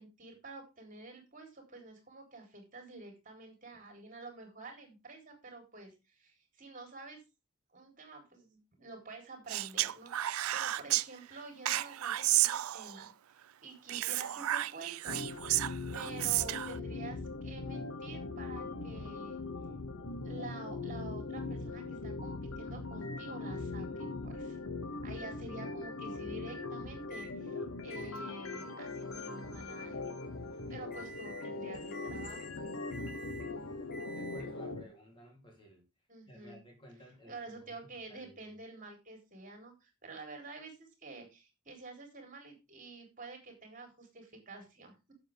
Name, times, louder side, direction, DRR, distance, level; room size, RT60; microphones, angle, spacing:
voice 1, 0.0-7.2 7.7-15.3 15.9-19.4 20.2-24.6 25.0-27.6 27.8-30.2 30.7-32.5 36.1-36.6 37.2-45.1, right 3 dB, 40° right, 3 dB, 3.8 m, -49 dB
Speech, 9.5-11.1 11.7-13.1 13.9-16.8, right 15 dB, 85° right, 0.4 m, -32 dB
sound 1, 15.1-34.8, left 3 dB, 80° left, 1.3 m, -40 dB
Microwave oven, 27.1-27.4 27.9-34.7, right 2 dB, 45° left, 1.4 m, -52 dB
voice 2, 34.1-35.8 36.3-37.8 38.1-38.5, equal, 25° left, 0 dB, 3.5 m, -53 dB
12.0 x 7.7 x 3.6 m, 0.26 s
head